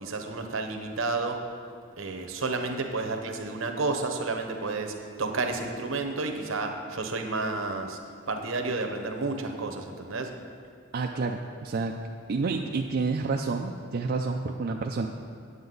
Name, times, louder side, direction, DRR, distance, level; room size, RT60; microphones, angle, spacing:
voice 1, 0.0-1.4 2.0-8.0 8.3-10.3, right 3 dB, 75° right, 5 dB, 0.9 m, -31 dB
voice 2, 10.9-11.9 12.3-15.1, right 4 dB, 50° right, 1 dB, 0.4 m, -29 dB
9.5 x 8.0 x 3.9 m, 2.4 s
head